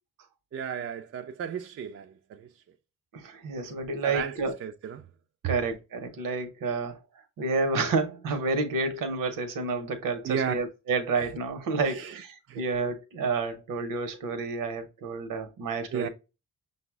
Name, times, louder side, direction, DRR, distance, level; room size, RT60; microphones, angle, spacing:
voice 1, 0.5-2.6 4.0-5.1 5.4-5.5 10.2-10.5 11.9-12.7 15.9-16.1, right 8 dB, 45° right, 0.4 m, -34 dB
voice 2, 3.1-4.5 5.4-7.0 7.4-16.1, right 3 dB, 70° right, 0.8 m, -30 dB
5.6 x 2.1 x 3.4 m
supercardioid pair, 50°, 34 cm